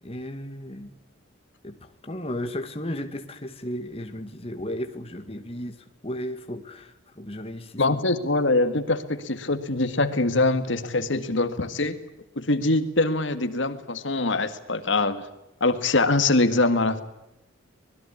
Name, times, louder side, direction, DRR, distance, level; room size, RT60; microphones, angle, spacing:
voice 1, 0.0-0.9 1.6-5.8 6.0-8.0, equal, 30° left, 6 dB, 2.2 m, -34 dB
voice 2, 7.8-12.0 12.4-15.2 15.6-17.0, left 2 dB, 70° left, 9 dB, 2.0 m, -23 dB
26.0 x 21.0 x 8.6 m, 0.90 s
head